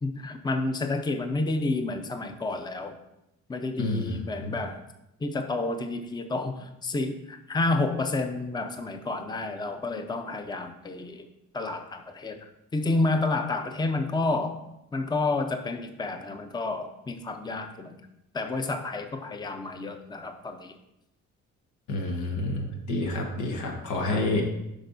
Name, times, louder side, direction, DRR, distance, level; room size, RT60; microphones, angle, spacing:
voice 1, 0.0-3.0 3.5-4.8 5.2-11.3 11.5-12.4 12.7-14.6 14.9-18.0 18.3-20.7 24.1-24.2, left 2 dB, 15° left, 6 dB, 0.6 m, -30 dB
voice 2, 3.8-4.6 21.9-24.5, left 2 dB, 90° left, 1 dB, 1.3 m, -29 dB
8.7 x 5.3 x 2.6 m, 0.86 s
cardioid pair, 90°, 30 cm